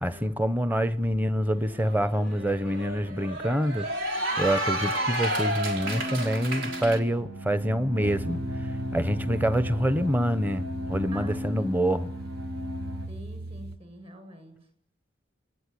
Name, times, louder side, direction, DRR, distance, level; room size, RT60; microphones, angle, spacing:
voice 1, 0.0-3.9 4.4-8.4 8.9-12.1, equal, 10° right, 1.0 m, -26 dB
Cheering / Applause, 1.1-1.2 1.6-7.0, right 1 dB, 70° right, 3.9 m, -31 dB
sound 1, 5.8-13.1, left 1 dB, 90° right, 7.3 m, -36 dB
sound 2, 8.0-13.8, right 2 dB, 50° right, 1.3 m, -38 dB
voice 2, 11.1-11.8 13.1-14.6, right 1 dB, 30° right, 7.6 m, -46 dB
28.0 x 19.5 x 9.9 m
head